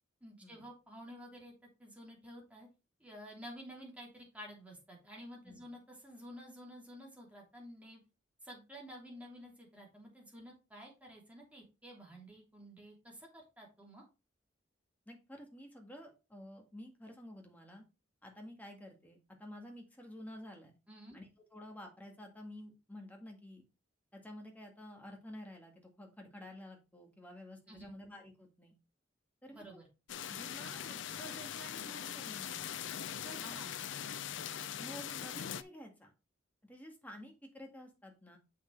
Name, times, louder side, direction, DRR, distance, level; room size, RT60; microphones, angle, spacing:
voice 1, 0.2-1.5 1.8-2.7 3.0-8.0 8.4-14.0 20.9-21.2 27.7-27.9 29.5-29.8 33.4-33.9, equal, 5° right, -2 dB, 3.1 m, -51 dB
voice 2, 15.1-17.8 18.2-20.8 21.1-23.6 24.1-28.8 29.4-29.6 30.3-32.8 33.2-33.6 34.8-36.1 36.6-38.4, equal, 10° left, 2 dB, 1.9 m, -51 dB
sound 1, 30.1-35.6, left 9 dB, 75° left, 0.5 m, -41 dB
7.0 x 6.4 x 3.3 m, 0.28 s
head